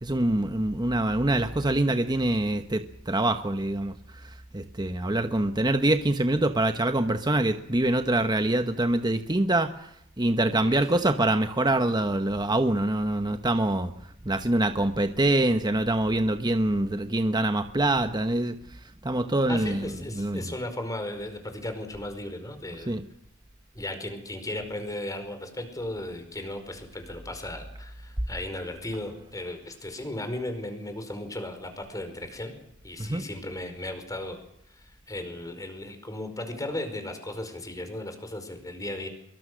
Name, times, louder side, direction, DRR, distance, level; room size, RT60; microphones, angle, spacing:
voice 1, 0.0-3.9 4.5-9.7 10.2-13.9 14.2-18.5 19.0-19.9 20.2-20.4 22.9-23.0 33.0-33.2, right 1 dB, 20° right, 8 dB, 1.1 m, -25 dB
voice 2, 19.5-23.0 23.7-32.5 32.8-34.4 34.7-39.1, left 1 dB, 15° left, 7 dB, 4.9 m, -36 dB
24.0 x 23.0 x 6.3 m, 0.73 s
head